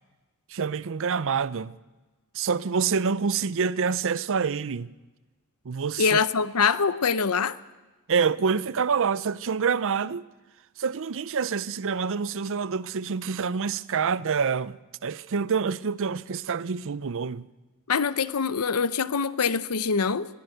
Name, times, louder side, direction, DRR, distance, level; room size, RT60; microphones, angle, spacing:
voice 1, 0.5-1.8 2.3-4.9 5.6-6.2 8.1-10.3 10.8-17.5, right 6 dB, 60° right, 0.6 m, -27 dB
voice 2, 6.0-7.6 17.9-20.3, left 5 dB, 85° left, 0.8 m, -24 dB
21.5 x 15.5 x 7.9 m
head